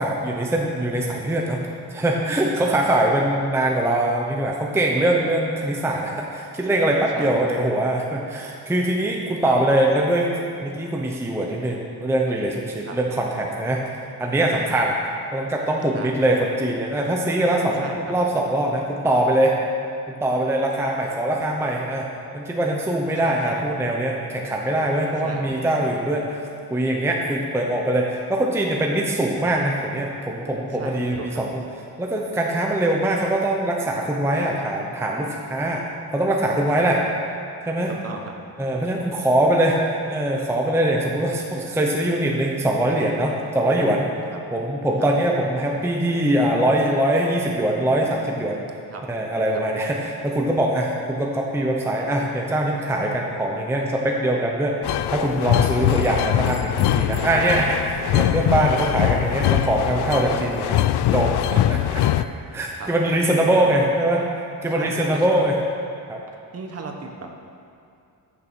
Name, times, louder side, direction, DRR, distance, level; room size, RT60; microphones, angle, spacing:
voice 1, 0.0-1.6 1.9-10.3 10.6-13.8 14.2-14.9 15.3-17.8 18.1-19.6 20.2-22.1 22.3-26.2 26.7-31.6 32.0-35.8 36.1-37.0 37.6-37.9 38.6-39.8 40.1-44.1 44.5-48.6 49.1-54.8 55.1-60.8 61.1-62.0 62.5-64.2 64.6-65.6 66.1-66.2, right 1 dB, 5° right, -1 dB, 0.7 m, -22 dB
voice 2, 7.1-7.5 9.5-9.6 12.8-13.0 14.7-14.8 15.9-16.2 17.8-18.1 23.2-23.7 25.2-25.6 30.8-31.4 36.7-36.9 37.9-38.3 48.9-49.0 59.7-60.0 62.7-62.9 63.5-63.9 64.7-65.4 66.5-67.3, right 4 dB, 40° right, 3 dB, 1.1 m, -36 dB
sound 1, 54.8-62.2, left 12 dB, 85° left, 0.5 m, -22 dB
14.0 x 7.1 x 6.1 m, 2.5 s
wide cardioid pair, 175°, 39 cm